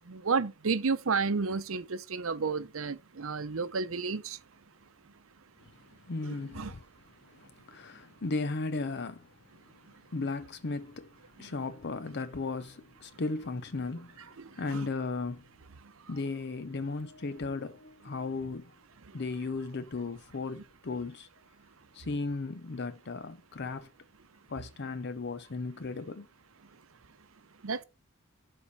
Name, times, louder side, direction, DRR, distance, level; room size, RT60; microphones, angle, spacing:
voice 1, 0.1-4.4 6.5-6.7 14.7-14.8 27.6-27.8, right 4 dB, 70° right, 0.7 m, -31 dB
voice 2, 6.0-6.8 7.2-9.3 10.1-11.1 11.4-15.4 16.1-18.7 19.1-21.3 21.9-23.9 24.5-26.3, left 3 dB, 55° left, 0.7 m, -36 dB
12.0 x 4.4 x 4.2 m
head